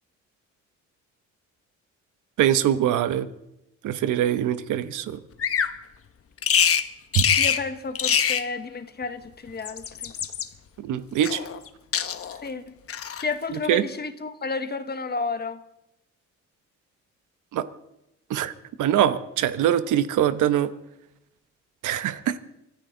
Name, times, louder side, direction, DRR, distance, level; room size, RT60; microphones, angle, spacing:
voice 1, 2.4-3.3 3.8-5.2 7.1-7.2 10.8-11.4 13.7-13.8 17.5-17.7 18.3-18.5 18.8-20.7 21.8-22.4, right 11 dB, 85° right, 11 dB, 1.1 m, -23 dB
Bird vocalization bird call bird song, 5.4-5.8 6.4-6.9 7.1-7.6 7.9-8.5 9.5-10.5 11.2-11.7 11.9-12.4 12.9-13.3, left 8 dB, 50° left, 1.1 m, -24 dB
voice 2, 7.4-10.1 12.4-12.8 13.2-15.6, left 4 dB, 35° left, 9 dB, 1.4 m, -31 dB
25.0 x 14.0 x 3.9 m, 0.85 s
cardioid pair, 90°, 30 cm